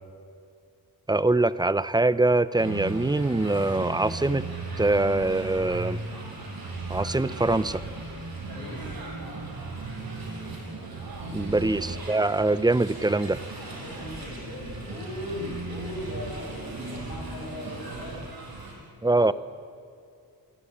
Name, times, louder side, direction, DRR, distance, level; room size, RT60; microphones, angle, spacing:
voice 1, 1.1-4.4 4.8-6.0 6.9-7.8 11.3-13.4 19.0-19.3, right 2 dB, 10° right, 15 dB, 0.7 m, -23 dB
sound 1, 2.6-18.7, right 3 dB, 80° right, 6.6 m, -37 dB
voice 2, 8.5-9.1 11.2-11.6 13.7-18.2 19.0-19.3, left 1 dB, 85° left, 0 dB, 7.8 m, -39 dB
26.0 x 23.5 x 8.8 m, 2.5 s
wide cardioid pair, 150°, 36 cm